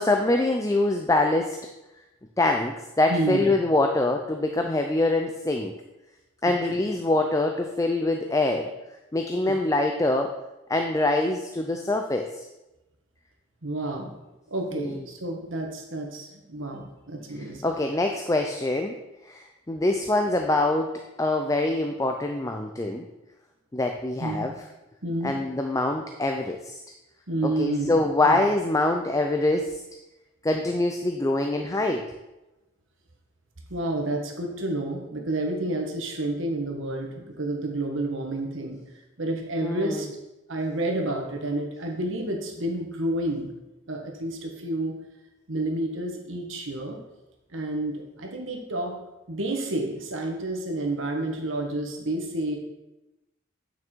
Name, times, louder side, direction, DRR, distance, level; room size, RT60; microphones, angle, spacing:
voice 1, 0.0-1.6 2.4-5.7 6.4-8.7 9.1-10.3 10.7-12.5 14.7-15.0 17.4-19.0 19.2-23.1 23.7-24.5 25.2-26.8 27.4-29.8 30.4-32.0 39.6-40.1, left 2 dB, 15° left, 4 dB, 0.4 m, -24 dB
voice 2, 3.1-3.5 13.6-14.1 14.5-17.6 24.2-24.5 25.0-25.4 27.3-28.4 33.7-38.8 39.2-40.1 40.5-43.5 43.9-44.9 45.5-47.0 47.5-49.0 49.3-52.6, right 1 dB, 70° right, 1 dB, 1.5 m, -30 dB
8.9 x 6.1 x 4.5 m, 0.98 s
head